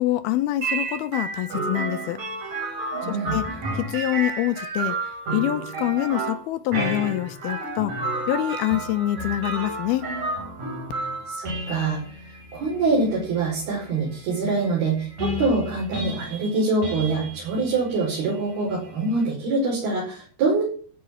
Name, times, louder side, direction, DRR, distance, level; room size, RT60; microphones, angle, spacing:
voice 1, 0.0-2.2 3.1-3.4 3.7-5.0 5.3-7.9 8.3-10.1, left 14 dB, 80° left, 2.5 m, -25 dB
sound 1, 0.6-19.3, right 2 dB, 45° right, 4.8 m, -32 dB
voice 2, 3.0-3.3 11.3-12.0 12.3-20.6, right 3 dB, 65° right, 6.8 m, -24 dB
13.0 x 6.1 x 8.9 m
omnidirectional pair, 4.7 m